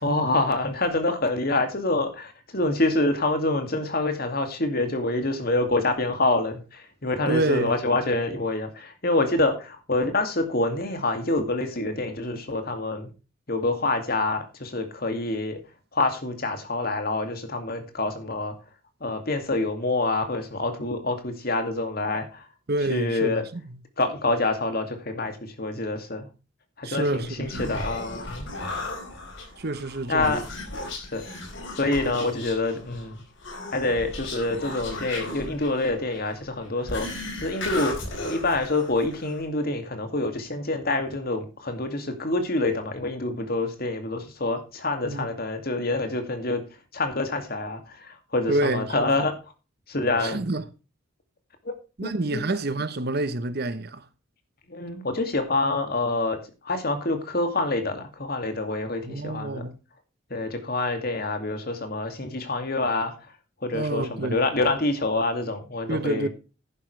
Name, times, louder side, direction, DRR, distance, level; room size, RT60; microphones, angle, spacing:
voice 1, 0.0-13.1 13.5-15.6 15.9-18.5 19.0-22.5 22.9-23.5 24.0-26.3 26.8-28.5 30.1-30.4 30.9-31.2 31.8-33.2 33.7-38.0 38.2-46.6 46.9-49.3 49.9-50.4 52.0-52.4 54.7-56.4 56.6-59.6 60.3-63.1 63.6-66.3, left 2 dB, 50° left, 2.4 m, -26 dB
voice 2, 7.3-7.8 22.7-23.4 26.8-27.7 29.6-30.4 45.0-45.3 48.5-49.3 50.2-50.6 52.0-54.0 59.0-59.7 63.7-64.4 65.9-66.3, right 2 dB, 50° right, 1.0 m, -28 dB
Human voice, 27.2-39.4, left 2 dB, 65° left, 4.3 m, -36 dB
11.0 x 10.0 x 3.3 m
head